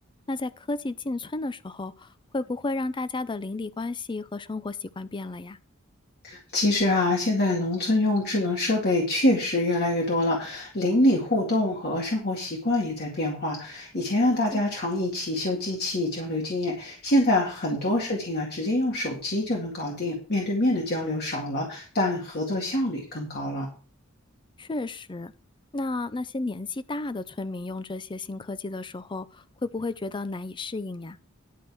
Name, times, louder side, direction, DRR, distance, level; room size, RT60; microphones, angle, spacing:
voice 1, 0.3-2.1 2.3-5.6 14.5-14.6 24.6-25.3 25.7-29.3 29.6-31.2, left 2 dB, 25° left, 0.5 m, -32 dB
voice 2, 6.2-23.7, left 1 dB, 50° left, 2.1 m, -25 dB
11.0 x 5.2 x 6.2 m
head